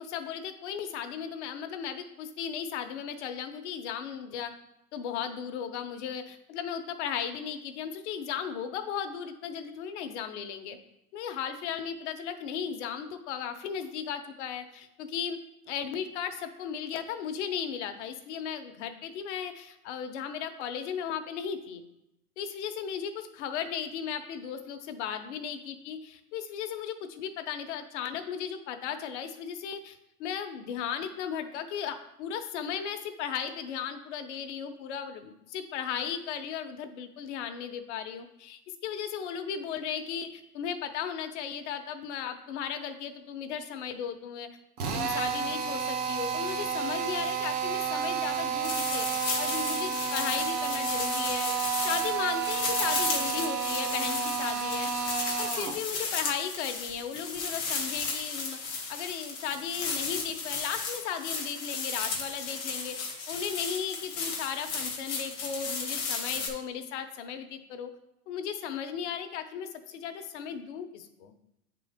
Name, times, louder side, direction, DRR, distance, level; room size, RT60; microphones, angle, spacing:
voice 1, 0.0-4.5 4.9-10.8 11.1-15.4 15.7-21.8 22.4-44.5 44.9-51.5 51.8-54.9 55.4-67.9 68.3-71.3, left 8 dB, 45° left, 7 dB, 0.9 m, -36 dB
Drill, 44.8-55.8, right 7 dB, 65° right, 1.2 m, -31 dB
sound 1, 48.6-66.5, left 4 dB, 15° left, 0.4 m, -34 dB
8.6 x 3.8 x 3.5 m, 0.85 s
hypercardioid pair, 135°, 47 cm